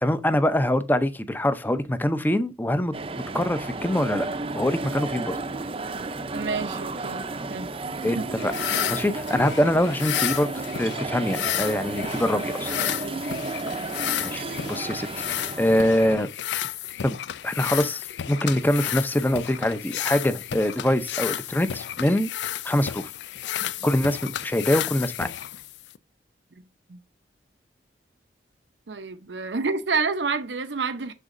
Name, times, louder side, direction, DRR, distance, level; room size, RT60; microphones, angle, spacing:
voice 1, 0.0-4.3 4.5-5.3 8.0-8.5 8.9-10.5 10.8-12.7 14.2-16.3 17.0-17.2 17.4-22.3 22.6-23.1 23.8-25.3, left 1 dB, 10° left, 0.6 m, -24 dB
sound 1, 2.9-16.2, right 3 dB, 30° right, 0.6 m, -32 dB
voice 2, 6.3-7.2 7.5-7.7 8.1-8.3 13.0-13.2 23.6-23.7 26.9-27.0 28.9-31.1, right 4 dB, 85° right, 0.7 m, -28 dB
sound 2, 8.4-26.0, left 11 dB, 80° left, 0.4 m, -32 dB
10.0 x 4.0 x 2.6 m
head